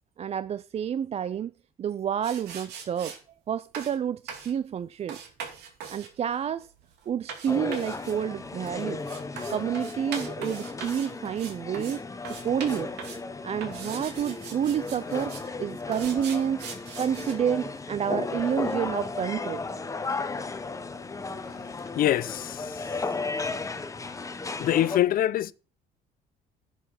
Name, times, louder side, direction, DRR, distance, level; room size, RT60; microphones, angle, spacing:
voice 1, 0.2-1.5 1.8-3.2 3.5-5.2 5.9-6.7 7.1-9.0 9.5-12.0 12.4-12.9 13.4-15.3 15.6-16.7 17.0-19.6 20.3-20.4, right 9 dB, 40° right, 0.4 m, -29 dB
sound 1, 2.2-3.2 3.7-4.0 4.3-4.5 5.1-12.0 12.2-13.2 13.6-15.5 15.9-17.4, right 6 dB, 80° right, 2.6 m, -41 dB
sound 2, 7.5-25.0, left 3 dB, 20° left, 0.9 m, -35 dB
voice 2, 22.0-22.8 24.6-25.5, left 12 dB, 60° left, 0.6 m, -24 dB
10.0 x 6.6 x 5.8 m
cardioid pair, 110°, 17 cm